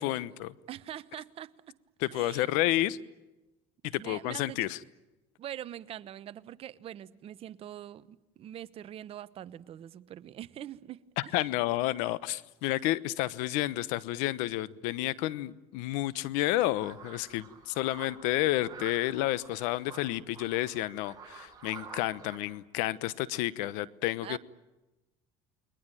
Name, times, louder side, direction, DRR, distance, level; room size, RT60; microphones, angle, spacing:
voice 1, 0.0-0.5 2.0-3.0 3.8-4.8 11.2-24.4, left 16 dB, 80° left, 1.1 m, -30 dB
voice 2, 0.7-1.7 2.1-2.4 4.0-4.7 5.4-11.0 24.2-24.4, right 11 dB, 45° right, 1.0 m, -43 dB
sound 1, 16.7-22.4, right 6 dB, 25° right, 7.5 m, -49 dB
29.5 x 21.5 x 9.2 m
cardioid pair, 115°, 13 cm